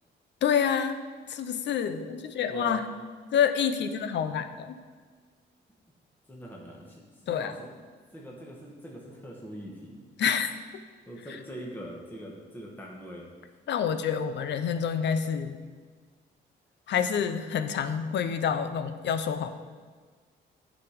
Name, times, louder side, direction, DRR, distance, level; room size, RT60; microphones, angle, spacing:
voice 1, 0.4-1.0 1.3-2.8 3.3-4.8 7.3-7.5 10.2-10.5 13.7-15.6 16.9-19.5, left 7 dB, 65° left, 10 dB, 0.7 m, -27 dB
voice 2, 2.5-2.8 6.3-7.7 8.1-10.0 11.1-13.3, equal, 10° left, -3 dB, 1.5 m, -42 dB
10.0 x 5.0 x 5.2 m, 1.5 s
cardioid pair, 90°, 20 cm